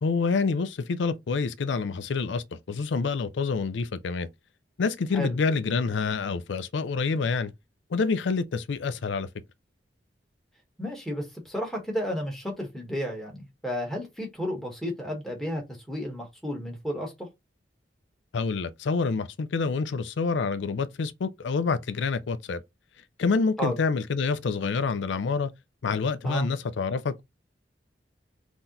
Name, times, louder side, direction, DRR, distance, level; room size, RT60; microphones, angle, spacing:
voice 1, 0.0-4.3 4.8-7.5 7.9-9.3 18.3-22.6 23.2-25.5 25.8-27.2, left 4 dB, 80° left, 0.4 m, -27 dB
voice 2, 10.8-15.6 15.9-17.3 23.6-23.7 26.2-26.5, equal, ahead, 1.5 m, -32 dB
3.8 x 2.9 x 3.9 m
head